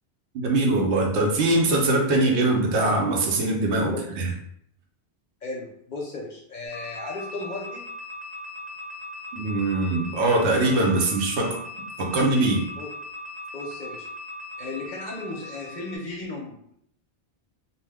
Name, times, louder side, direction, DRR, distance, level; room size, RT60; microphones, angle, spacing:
voice 1, 0.3-4.3 9.3-11.6 12.0-12.7, right 2 dB, 80° right, 1 dB, 0.9 m, -22 dB
voice 2, 5.4-7.9 12.8-12.9 13.5-14.1 14.6-16.7, left 2 dB, 55° left, -2 dB, 0.6 m, -35 dB
sound 1, 6.6-16.0, left 2 dB, 45° right, 0.8 m, -39 dB
2.8 x 2.0 x 3.3 m, 0.69 s
omnidirectional pair, 1.1 m